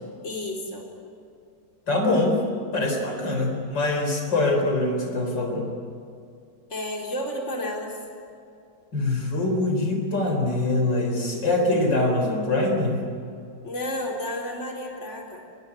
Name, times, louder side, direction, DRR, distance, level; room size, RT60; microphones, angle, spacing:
voice 1, 0.2-0.9 6.7-8.0 13.6-15.4, left 1 dB, 40° left, 0 dB, 4.5 m, -31 dB
voice 2, 1.9-2.4 2.7-5.7 8.9-13.0, left 2 dB, 70° left, 3 dB, 4.7 m, -23 dB
25.5 x 22.0 x 9.9 m, 2.5 s
omnidirectional pair, 2.0 m